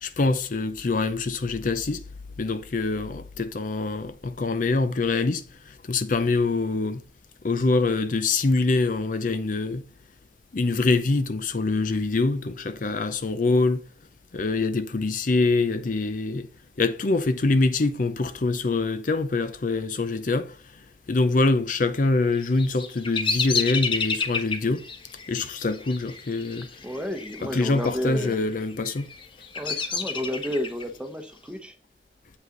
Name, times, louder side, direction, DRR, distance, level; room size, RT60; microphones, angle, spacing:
voice 1, 0.0-2.0 2.4-7.0 7.4-9.9 10.5-13.8 14.3-16.5 16.8-20.6 21.1-24.9 25.3-26.7 27.4-29.1, left 3 dB, 50° left, 0.5 m, -24 dB
Bird vocalization bird call bird song, 22.4-27.4 27.7-28.3 28.9-30.8, left 5 dB, 30° left, 0.9 m, -30 dB
voice 2, 26.8-28.5 29.6-31.7, equal, 5° right, 0.9 m, -31 dB
7.9 x 5.5 x 3.9 m
head